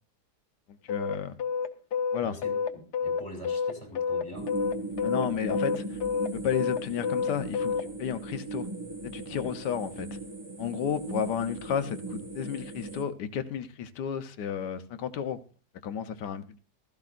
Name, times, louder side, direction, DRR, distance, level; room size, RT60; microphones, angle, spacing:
voice 1, 0.8-1.4 2.1-2.4 5.0-6.0 6.3-8.7 9.0-10.2 10.6-15.4 15.8-16.6, left 8 dB, 90° left, 1.5 m, -32 dB
sound 1, 0.9-7.8, left 6 dB, 75° left, 1.5 m, -29 dB
voice 2, 2.2-4.5, left 1 dB, 15° left, 2.5 m, -44 dB
sound 2, 4.3-13.0, right 2 dB, 15° right, 1.4 m, -38 dB
16.0 x 14.5 x 2.5 m
omnidirectional pair, 1.8 m